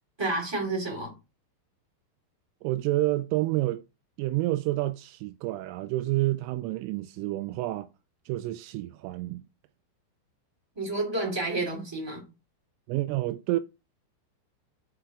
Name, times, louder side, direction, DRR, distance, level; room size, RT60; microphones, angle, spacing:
voice 1, 0.2-1.1 10.7-12.2, right 2 dB, 10° right, 1.3 m, -30 dB
voice 2, 2.6-3.8 4.2-7.9 8.3-9.4 12.9-13.6, right 17 dB, 85° right, 3.1 m, -29 dB
7.7 x 5.0 x 4.6 m
omnidirectional pair, 5.7 m